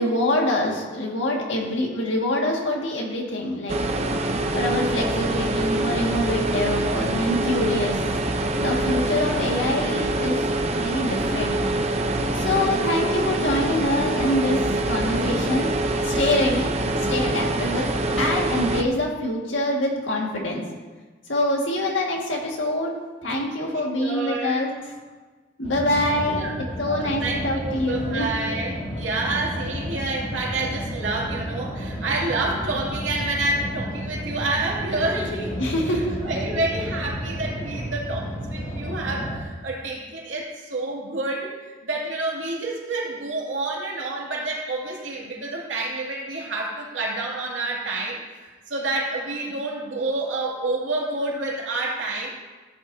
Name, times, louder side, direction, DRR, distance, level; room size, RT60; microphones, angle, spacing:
voice 1, 0.0-4.1 4.5-8.0 8.6-10.4 10.7-11.6 12.3-14.6 14.9-15.7 16.0-16.7 17.0-17.9 18.2-20.6 21.3-22.9 23.2-24.7 25.6-26.5 26.8-28.3 35.6-36.4, left 1 dB, 80° left, -1 dB, 1.9 m, -25 dB
sound 1, 3.7-18.8, right 2 dB, 35° right, 0.6 m, -25 dB
voice 2, 24.0-24.6 26.2-52.4, right 2 dB, 90° right, -3 dB, 2.4 m, -28 dB
sound 2, 25.6-39.4, equal, 40° left, 2.3 m, -32 dB
15.0 x 8.3 x 2.7 m, 1.3 s
head